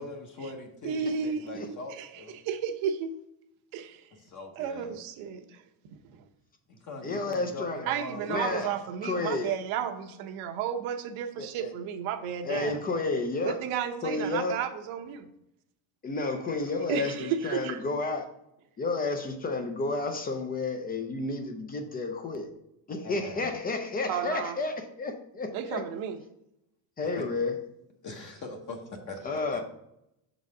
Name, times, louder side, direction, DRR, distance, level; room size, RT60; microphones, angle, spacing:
voice 1, 0.0-2.4 4.1-5.0 6.7-9.0 12.4-12.8 23.0-23.5 27.0-27.3 28.0-29.6, left 2 dB, 35° left, 3 dB, 0.9 m, -42 dB
voice 2, 0.8-2.1 2.4-3.1 3.7-4.0 4.6-5.6 6.1-6.2 7.9-12.8 13.4-15.3 16.9-17.8 24.1-24.6 25.5-26.2, right 8 dB, 70° right, 6 dB, 0.9 m, -33 dB
voice 3, 7.0-7.8 8.3-8.7 9.0-9.5 11.4-11.7 12.4-13.6 14.0-14.6 16.0-18.3 18.8-22.5 22.9-25.8 27.0-27.6 29.2-29.6, left 3 dB, 20° left, 5 dB, 0.4 m, -31 dB
6.3 x 4.1 x 4.7 m, 0.82 s
cardioid pair, 150°, 50 cm